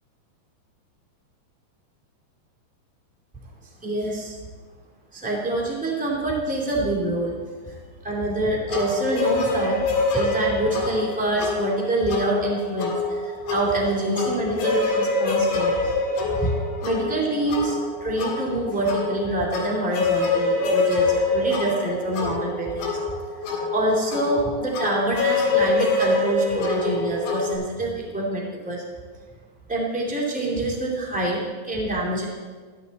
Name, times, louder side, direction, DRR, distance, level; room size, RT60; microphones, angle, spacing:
voice 1, 3.8-4.4 5.1-16.0 16.4-22.9 23.4-28.8 29.7-32.2, right 1 dB, 5° right, -3 dB, 0.7 m, -26 dB
sound 1, 8.7-27.5, left 3 dB, 80° left, 4.3 m, -25 dB
13.5 x 12.0 x 4.1 m, 1.5 s
omnidirectional pair, 5.1 m